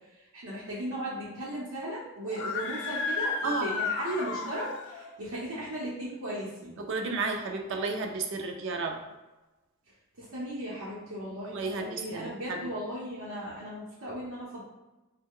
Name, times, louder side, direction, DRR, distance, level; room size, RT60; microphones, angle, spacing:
voice 1, 0.3-6.7 10.2-14.6, right 1 dB, 85° right, -8 dB, 0.8 m, -36 dB
Screaming, 2.3-5.1, left 4 dB, 55° left, 0.4 m, -33 dB
voice 2, 6.8-9.0 11.4-12.7, right 3 dB, 55° right, 4 dB, 0.4 m, -32 dB
3.1 x 2.1 x 3.6 m, 1.1 s
head